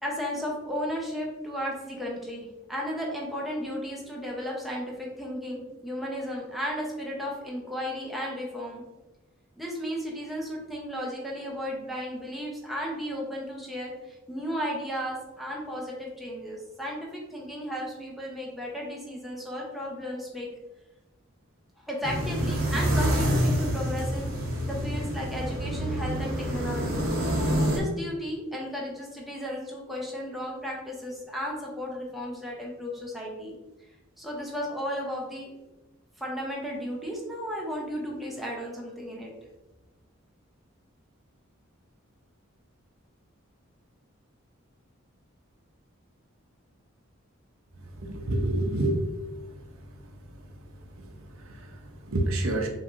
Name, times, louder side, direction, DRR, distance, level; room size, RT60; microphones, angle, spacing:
voice 1, 0.0-8.8 9.6-20.5 21.8-24.3 24.6-27.0 27.6-33.5 34.2-35.5 36.2-39.3, equal, ahead, -3 dB, 0.7 m, -34 dB
sound 1, 22.0-27.8, equal, 45° right, 0.9 m, -27 dB
voice 2, 48.0-49.1 51.0-52.7, right 1 dB, 80° right, 2 dB, 0.7 m, -28 dB
5.7 x 3.1 x 2.6 m, 1.0 s
head